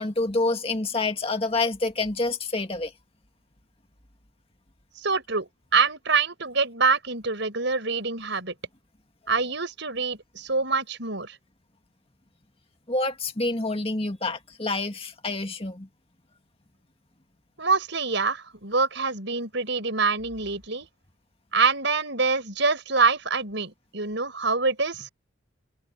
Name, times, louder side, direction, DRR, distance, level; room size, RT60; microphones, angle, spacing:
voice 1, 0.0-2.9 12.9-15.9, left 2 dB, 30° left, 2.0 m, -27 dB
voice 2, 5.0-8.5 9.3-11.4 17.6-20.9 21.5-25.1, right 4 dB, 60° right, 6.9 m, -25 dB
open air
head